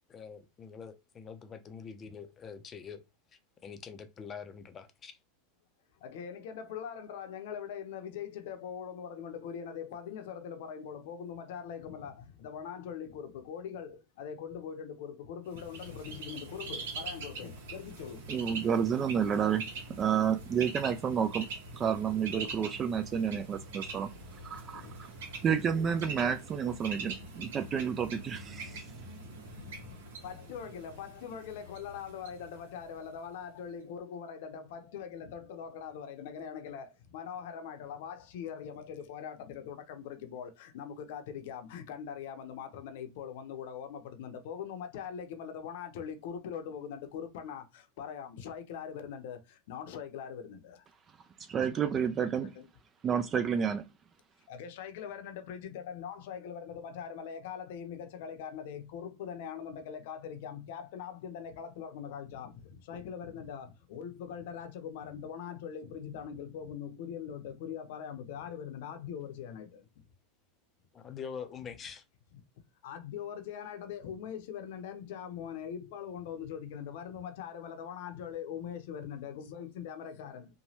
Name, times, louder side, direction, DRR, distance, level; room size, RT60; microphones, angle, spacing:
voice 1, 0.1-3.0 3.3-5.2 70.9-72.0, left 6 dB, 25° left, 0.5 m, -45 dB
voice 2, 6.0-18.2 24.7-24.9 29.6-50.8 51.8-52.7 54.5-69.8 72.8-80.5, left 8 dB, 70° left, 0.6 m, -42 dB
Bird, 15.5-33.3, right 3 dB, 80° right, 0.9 m, -44 dB
voice 3, 18.3-21.5 21.7-24.1 24.4-25.1 25.4-28.8 51.5-52.5 53.0-53.8, right 7 dB, 30° right, 0.3 m, -30 dB
3.1 x 2.2 x 2.8 m
supercardioid pair, 125°, 0 cm